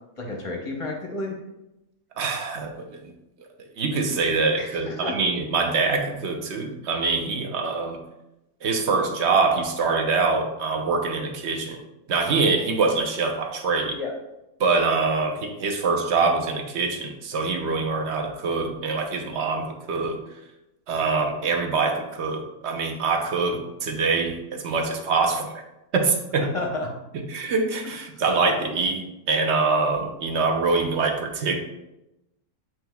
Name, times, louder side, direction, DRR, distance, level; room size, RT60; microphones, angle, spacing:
voice 1, 0.2-1.4 4.6-5.1 13.9-14.1 26.4-26.9, left 2 dB, 30° left, -1 dB, 0.6 m, -31 dB
voice 2, 2.2-3.1 3.8-8.0 8.6-11.8 12.1-14.0 14.6-20.2 20.9-25.5 25.9-26.5 27.3-31.6, right 4 dB, 60° right, 4 dB, 0.8 m, -24 dB
7.8 x 3.0 x 2.2 m, 0.92 s
omnidirectional pair, 1.6 m